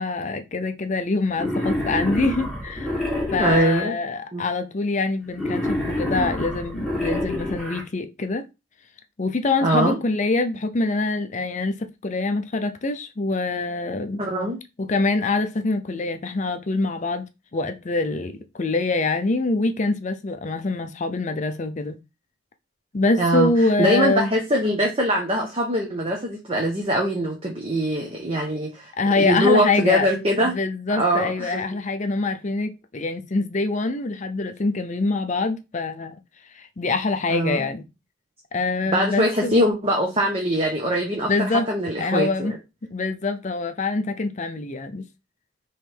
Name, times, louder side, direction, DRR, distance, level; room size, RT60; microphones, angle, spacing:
voice 1, 0.0-3.0 3.3-8.5 9.2-14.2 14.8-17.3 17.5-22.0 22.9-24.3 29.0-30.1 30.4-36.2 36.5-37.9 38.5-39.6 41.2-41.7 42.0-42.5 42.9-45.0, left 3 dB, 35° left, 0.5 m, -25 dB
Wild animals, 1.3-3.8 5.3-7.8, left 1 dB, ahead, 1.5 m, -27 dB
voice 2, 3.4-3.9 4.3-4.4 9.6-10.0 14.2-14.6 23.2-23.5 23.8-28.9 29.2-30.5 31.0-31.8 37.3-37.7 38.9-42.6, equal, 30° right, 0.8 m, -22 dB
3.5 x 3.1 x 4.5 m
head